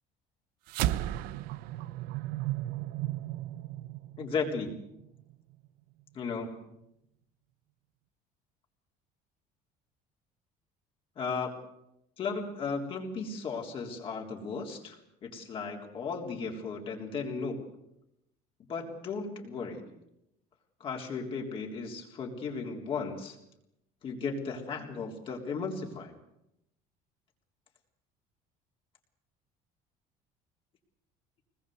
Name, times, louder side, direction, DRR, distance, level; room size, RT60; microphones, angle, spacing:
sound 1, 0.7-5.3, right 14 dB, 75° right, 0.9 m, -34 dB
voice 1, 4.2-4.7 6.1-6.7 11.2-11.5 12.2-17.6 18.7-19.8 20.8-23.4 24.0-26.2, left 4 dB, 35° left, 1 dB, 3.6 m, -35 dB
24.0 x 20.5 x 7.9 m, 0.83 s
cardioid pair, 165°, 15 cm